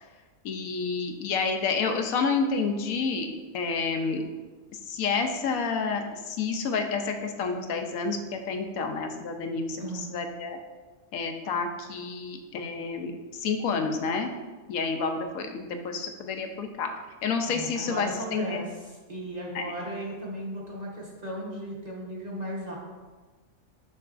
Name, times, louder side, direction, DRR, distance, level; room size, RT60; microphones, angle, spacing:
voice 1, 0.4-4.2 4.7-10.6 11.1-14.3 14.7-16.9 17.2-18.6 19.5-19.6, left 4 dB, 80° left, 5 dB, 1.0 m, -29 dB
voice 2, 9.8-10.1 17.5-18.7 19.1-22.8, right 1 dB, 30° right, -4 dB, 1.0 m, -36 dB
6.8 x 5.7 x 2.5 m, 1.3 s
omnidirectional pair, 1.5 m